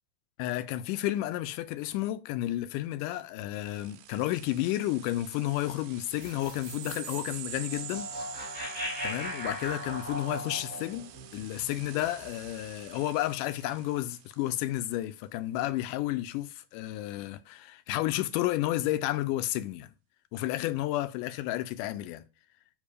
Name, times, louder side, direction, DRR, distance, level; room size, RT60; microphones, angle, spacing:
voice 1, 0.4-8.1 9.0-19.9 20.3-22.2, left 15 dB, 80° left, 2.0 m, -31 dB
sound 1, 3.5-14.6, right 12 dB, 85° right, 2.2 m, -47 dB
sound 2, 6.2-12.5, equal, 5° left, 1.9 m, -39 dB
5.4 x 5.1 x 5.0 m
omnidirectional pair, 3.8 m